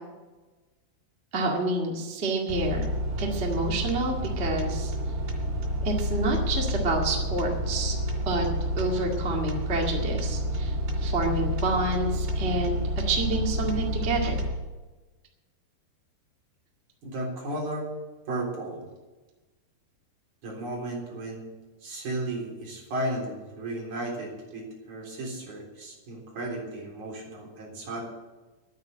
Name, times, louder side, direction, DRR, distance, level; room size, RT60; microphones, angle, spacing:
voice 1, 1.3-2.9 3.2-4.9 5.8-7.9 8.2-8.4 8.8-12.8 13.0-14.4, right 2 dB, 30° right, -1 dB, 1.1 m, -28 dB
sound 1, 2.5-14.5, equal, 80° right, 4.9 m, -29 dB
voice 2, 17.0-17.9 18.3-18.8 20.4-21.5 21.8-28.0, right 1 dB, 50° right, -2 dB, 4.9 m, -34 dB
11.0 x 9.2 x 9.3 m, 1.2 s
omnidirectional pair, 4.6 m